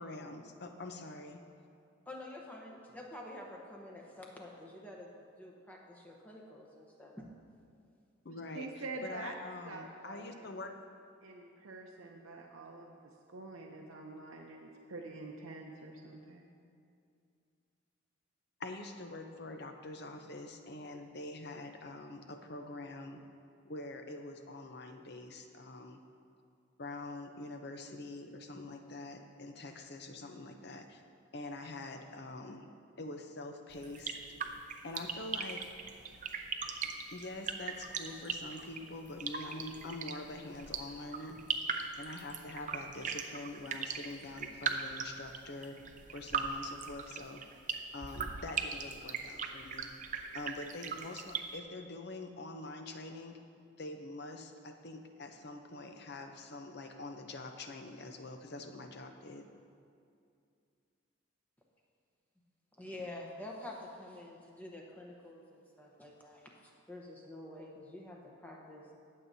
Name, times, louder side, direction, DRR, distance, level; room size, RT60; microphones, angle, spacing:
voice 1, 0.0-1.4 8.2-10.7 18.6-23.2 23.6-26.0 26.8-31.0 31.3-32.7 33.0-34.2 34.8-35.7 37.1-41.4 42.0-45.8 46.1-47.4 47.9-49.9 50.3-53.4 53.8-59.5, left 2 dB, 50° left, 5 dB, 0.7 m, -45 dB
voice 2, 2.1-5.1 5.4-7.3 62.8-68.9, left 1 dB, 10° left, -2 dB, 0.9 m, -48 dB
voice 3, 8.5-9.4 9.7-10.6 11.2-13.0 13.3-16.4, right 3 dB, 85° right, 0 dB, 0.7 m, -46 dB
sound 1, 33.7-51.4, right 6 dB, 35° right, 0.5 m, -39 dB
21.0 x 7.4 x 2.7 m, 2.4 s
head